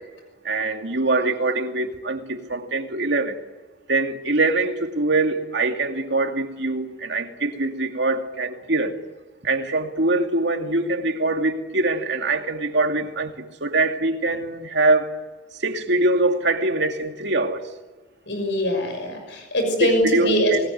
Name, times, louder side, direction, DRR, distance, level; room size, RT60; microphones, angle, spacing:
voice 1, 0.4-3.4 3.9-9.0 9.4-15.1 15.5-17.6 19.8-20.7, right 2 dB, 65° right, 5 dB, 2.5 m, -23 dB
voice 2, 18.3-20.7, equal, 70° left, 4 dB, 6.1 m, -22 dB
26.0 x 19.5 x 9.4 m, 1.2 s
head